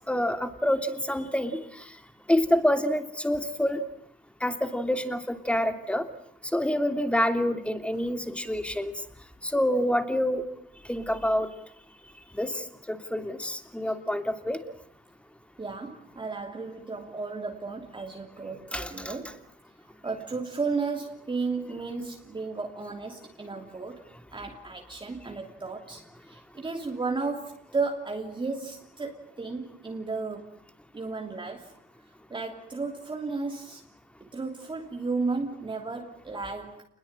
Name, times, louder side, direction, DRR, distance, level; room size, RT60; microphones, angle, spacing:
voice 1, 0.1-1.6 2.3-3.8 4.4-6.1 6.5-8.9 9.4-10.4 10.9-11.5 12.3-14.6 18.7-19.1, left 1 dB, 5° left, 8 dB, 3.0 m, -27 dB
voice 2, 15.6-19.4 20.0-24.0 24.3-30.5 30.9-31.7 32.3-33.8 34.2-36.8, right 4 dB, 25° right, 2 dB, 3.0 m, -34 dB
28.0 x 21.0 x 8.9 m, 0.69 s
cardioid pair, 90°, 20 cm